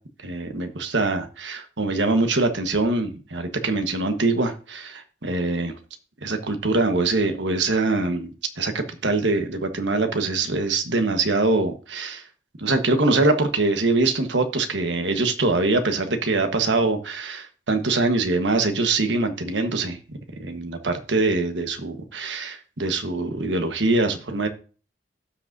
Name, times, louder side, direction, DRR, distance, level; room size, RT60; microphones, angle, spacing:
voice 1, 0.2-5.7 6.2-8.3 8.6-12.3 12.6-20.0 20.4-24.5, right 3 dB, 85° right, 7 dB, 1.3 m, -23 dB
15.5 x 6.2 x 2.7 m, 0.37 s
head